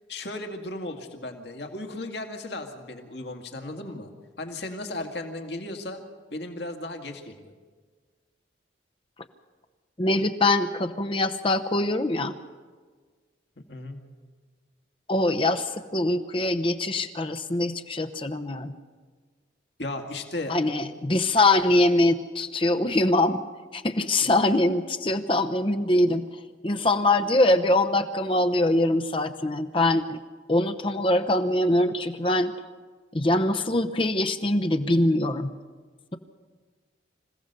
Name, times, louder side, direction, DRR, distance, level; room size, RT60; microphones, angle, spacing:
voice 1, 0.1-4.1 4.4-6.0 6.3-7.5 13.7-14.0 19.8-20.9, left 2 dB, 60° left, 5 dB, 2.1 m, -35 dB
voice 2, 10.0-12.3 15.1-18.7 20.5-23.4 23.7-26.2 26.6-30.2 30.5-32.5 33.1-35.5, left 1 dB, 30° left, 7 dB, 0.8 m, -23 dB
26.5 x 16.5 x 6.7 m, 1.5 s
head